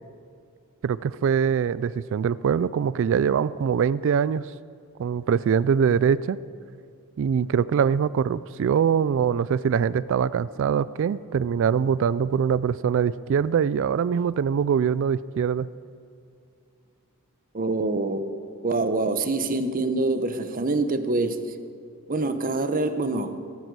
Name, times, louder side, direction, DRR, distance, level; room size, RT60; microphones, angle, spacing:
voice 1, 0.8-4.5 5.0-6.4 7.2-15.7, right 7 dB, 60° right, 0.3 m, -23 dB
voice 2, 17.5-18.3 18.6-21.4 22.1-23.4, right 2 dB, 40° right, 0.8 m, -25 dB
16.5 x 13.0 x 4.7 m
head